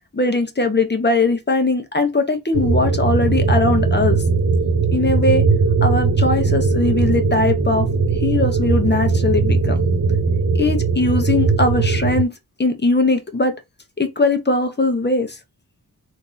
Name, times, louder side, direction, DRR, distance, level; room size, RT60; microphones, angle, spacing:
voice 1, 0.1-4.2 4.9-5.4 5.8-7.9 8.2-9.8 10.5-12.3 12.6-13.5 14.0-15.4, left 3 dB, 30° left, 1.0 m, -20 dB
sound 1, 2.5-12.2, right 4 dB, 55° right, 1.0 m, -19 dB
3.7 x 2.8 x 3.9 m
wide cardioid pair, 75°, 37 cm